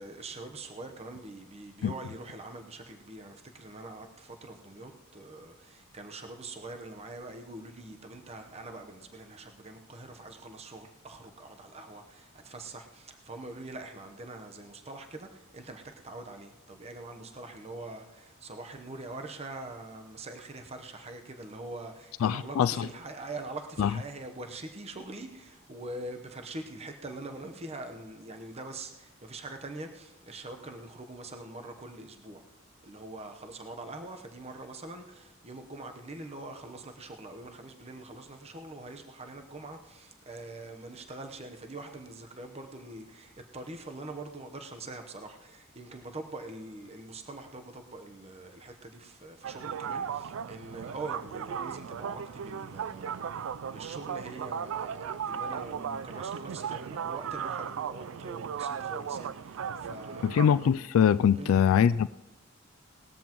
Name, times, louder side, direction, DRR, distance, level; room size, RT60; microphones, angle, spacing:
voice 1, 0.0-32.4 32.8-60.4 61.3-61.6, right 2 dB, 30° right, 0.9 m, -44 dB
voice 2, 22.2-22.7 23.8-23.9 60.2-62.1, left 8 dB, 75° left, 0.3 m, -23 dB
sound 1, 49.4-60.7, right 7 dB, 70° right, 0.4 m, -36 dB
19.0 x 13.5 x 3.0 m
head